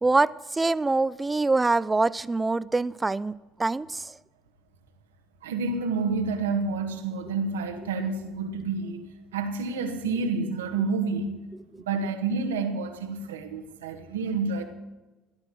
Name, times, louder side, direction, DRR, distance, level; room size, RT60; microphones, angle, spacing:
voice 1, 0.0-4.2 11.7-11.8, right 3 dB, 20° right, 0.5 m, -25 dB
voice 2, 5.4-11.4 11.8-14.6, right 4 dB, 85° right, 1.6 m, -29 dB
15.0 x 11.5 x 6.1 m
hypercardioid pair, 65°, 0 cm